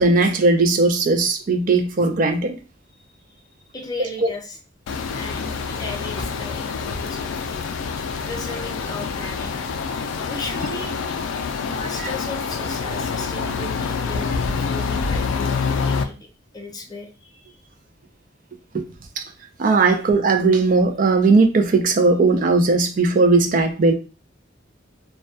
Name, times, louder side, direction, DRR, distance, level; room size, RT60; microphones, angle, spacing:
voice 1, 0.0-2.5 4.2-4.3 12.0-12.1 18.7-18.8 19.2-19.3 19.6-23.9, right 3 dB, 45° right, 0.4 m, -18 dB
voice 2, 3.7-4.6 5.1-7.3 8.2-9.5 10.2-11.0 11.6-16.2 16.5-17.6, left 2 dB, 20° left, 0.5 m, -35 dB
sound 1, 4.9-16.0, left 5 dB, 85° left, 0.3 m, -26 dB
2.2 x 2.2 x 2.6 m
head